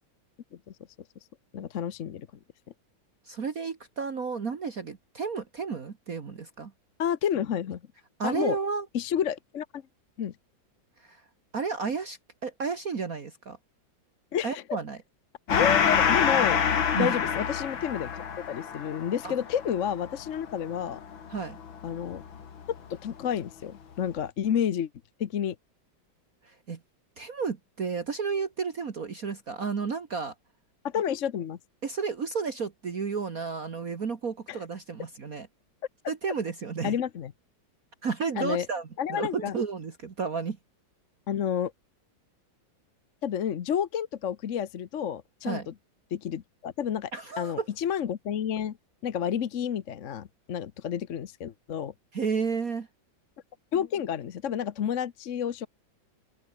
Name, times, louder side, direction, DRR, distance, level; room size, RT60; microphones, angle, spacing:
voice 1, 1.5-2.3 7.0-7.8 8.2-8.6 8.9-9.8 10.2-10.3 14.3-14.8 15.5-16.6 16.9-21.0 21.8-22.2 22.9-24.9 25.2-25.6 30.8-31.6 34.5-34.6 36.8-37.3 38.4-38.7 39.0-39.5 41.3-41.7 43.2-45.7 46.1-47.1 47.4-48.8 49.0-51.9 53.7-55.7, left 9 dB, 50° left, 1.0 m, -30 dB
voice 2, 3.3-6.7 8.2-8.9 11.0-11.2 11.5-13.6 14.4-15.0 17.0-17.2 19.2-19.3 21.3-21.6 26.4-26.8 27.2-30.3 31.8-35.5 36.1-37.0 38.0-40.6 45.4-45.7 47.1-47.7 52.1-52.9, right 5 dB, 45° right, 2.1 m, -32 dB
Gong, 15.5-22.5, left 7 dB, 85° left, 2.7 m, -27 dB
open air
omnidirectional pair, 2.1 m